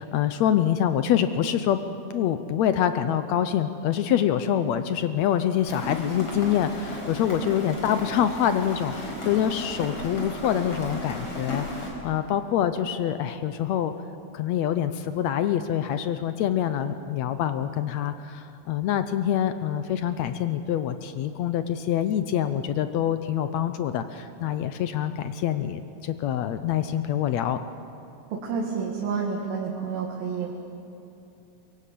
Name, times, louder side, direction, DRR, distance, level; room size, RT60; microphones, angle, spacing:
voice 1, 0.0-1.8 2.1-13.9 14.3-27.6, left 10 dB, 85° left, 10 dB, 1.5 m, -25 dB
Rain, 5.6-11.9, left 1 dB, 40° left, 5.4 m, -35 dB
voice 2, 28.3-30.6, right 5 dB, 85° right, -1 dB, 3.8 m, -30 dB
23.5 x 22.5 x 8.5 m, 2.7 s
omnidirectional pair, 4.1 m